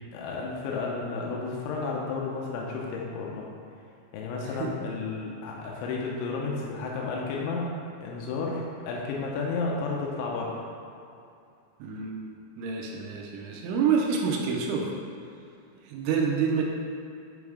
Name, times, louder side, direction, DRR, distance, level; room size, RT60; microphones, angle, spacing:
voice 1, 0.1-3.5 4.1-7.7 8.0-10.6, left 4 dB, 90° left, -2 dB, 3.1 m, -32 dB
voice 2, 11.8-12.3 12.6-14.9 15.9-16.6, right 6 dB, 85° right, 0 dB, 3.0 m, -27 dB
8.6 x 3.5 x 4.9 m, 2.6 s
omnidirectional pair, 5.4 m